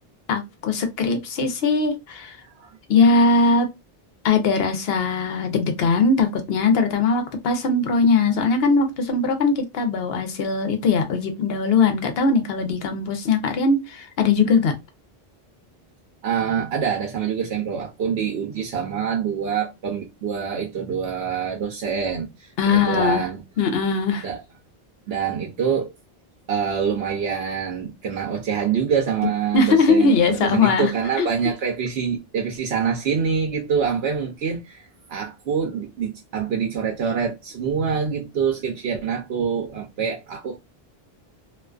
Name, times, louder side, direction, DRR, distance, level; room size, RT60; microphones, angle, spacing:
voice 1, 0.3-2.4 2.9-3.7 4.2-14.7 22.6-23.2 23.6-24.3 29.5-30.9 31.2-31.3, left 4 dB, 75° left, 0.9 m, -20 dB
voice 2, 16.2-23.4 24.2-24.4 25.1-25.9 26.5-40.6, right 7 dB, 85° right, 0.8 m, -25 dB
2.4 x 2.3 x 2.3 m
omnidirectional pair, 1.0 m